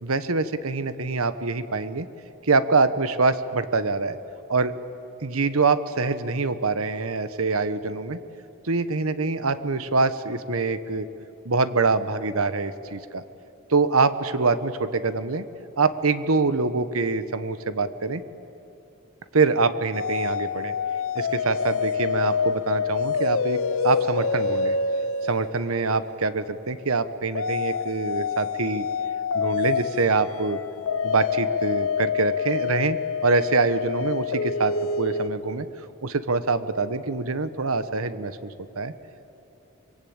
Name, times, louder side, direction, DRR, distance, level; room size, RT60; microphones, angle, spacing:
voice 1, 0.0-2.1 2.4-4.2 4.5-4.7 5.2-8.2 8.6-11.1 11.4-13.2 13.7-15.4 15.8-18.2 19.3-20.7 21.1-24.8 25.2-28.9 29.3-30.6 31.0-33.0 33.2-35.7 36.0-38.9, right 3 dB, 90° right, 12 dB, 1.1 m, -24 dB
sound 1, 19.9-26.2 27.4-35.3, left 5 dB, 70° left, 0.9 m, -27 dB
25.0 x 22.5 x 8.8 m, 3.0 s
head